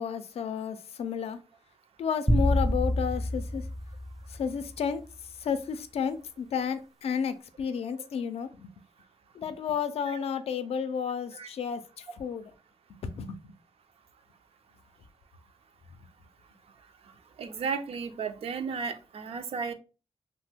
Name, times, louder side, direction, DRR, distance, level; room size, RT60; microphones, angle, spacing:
voice 1, 0.0-1.4 2.0-3.6 4.3-5.0 5.4-8.7 9.4-11.8 12.2-12.5 13.1-13.5, left 7 dB, 70° left, 0.4 m, -32 dB
sound 1, 2.3-4.8, equal, ahead, 0.3 m, -27 dB
voice 2, 17.4-19.7, right 5 dB, 65° right, 0.4 m, -34 dB
2.8 x 2.1 x 3.3 m
cardioid pair, 95°, 11 cm